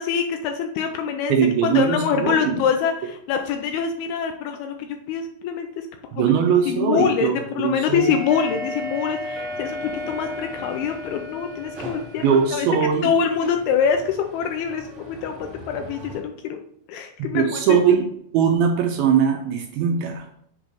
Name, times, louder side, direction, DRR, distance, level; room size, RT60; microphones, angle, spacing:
voice 1, 0.0-1.3 1.6-5.9 6.2-6.4 6.7-12.7 13.0-16.6 16.9-17.6, left 7 dB, 80° left, 5 dB, 2.3 m, -25 dB
voice 2, 1.3-2.6 6.1-8.2 12.2-13.1 17.2-18.0 18.3-20.3, right 7 dB, 80° right, 3 dB, 2.3 m, -20 dB
sound 1, 8.0-16.2, equal, 45° right, 1.5 m, -35 dB
7.4 x 3.1 x 5.1 m, 0.68 s
omnidirectional pair, 4.8 m